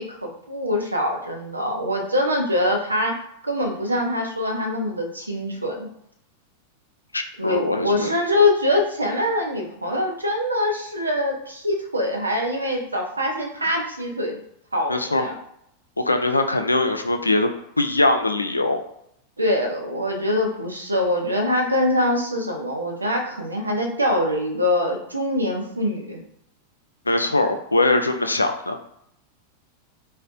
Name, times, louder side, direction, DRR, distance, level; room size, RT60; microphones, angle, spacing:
voice 1, 0.0-5.9 7.4-14.4 14.7-15.3 19.4-26.2, left 1 dB, 80° right, 2 dB, 0.6 m, -24 dB
voice 2, 7.1-8.1 14.9-15.3 16.0-17.5 17.8-18.8 27.1-28.8, left 2 dB, 80° left, 6 dB, 0.3 m, -21 dB
4.0 x 2.1 x 2.5 m, 0.74 s
figure-of-eight pair, 90°, 0 cm